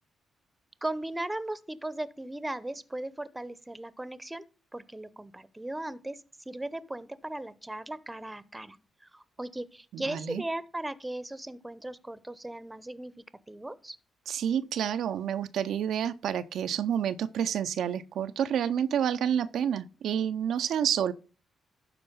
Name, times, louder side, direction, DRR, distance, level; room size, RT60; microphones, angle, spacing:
voice 1, 0.8-4.4 4.7-14.0, right 1 dB, 15° right, 0.8 m, -37 dB
voice 2, 9.9-10.4 14.3-21.1, right 9 dB, 75° right, 0.5 m, -29 dB
11.5 x 4.5 x 5.4 m
supercardioid pair, 60°, 0 cm